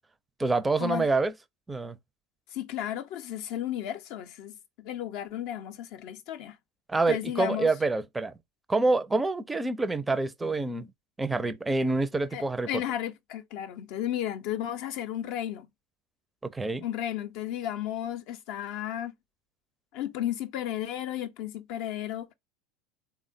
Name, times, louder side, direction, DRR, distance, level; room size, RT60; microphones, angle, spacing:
voice 1, 0.4-1.3 1.7-2.0 6.9-8.3 8.7-10.9 11.2-12.7 16.4-16.8, right 3 dB, 15° right, 0.4 m, -27 dB
voice 2, 2.5-6.6 7.1-7.7 12.3-15.7 16.8-19.1 19.9-22.3, left 11 dB, 55° left, 0.5 m, -33 dB
3.5 x 2.1 x 2.4 m
figure-of-eight pair, 75°, 0 cm